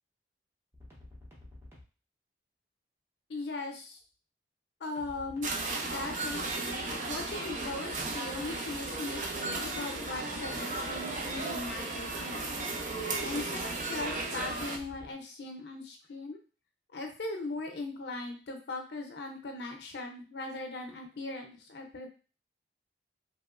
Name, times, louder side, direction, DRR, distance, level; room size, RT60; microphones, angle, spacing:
sound 1, 0.7-1.8 5.0-15.1, left 2 dB, 15° right, 0.8 m, -50 dB
voice 1, 3.3-4.0 4.8-5.5 5.8-12.6 13.2-16.4 16.9-22.1, left 2 dB, 70° left, 3 dB, 0.5 m, -39 dB
sound 2, 5.4-14.8, right 3 dB, 45° right, 0.4 m, -35 dB
2.9 x 2.9 x 2.4 m, 0.36 s
head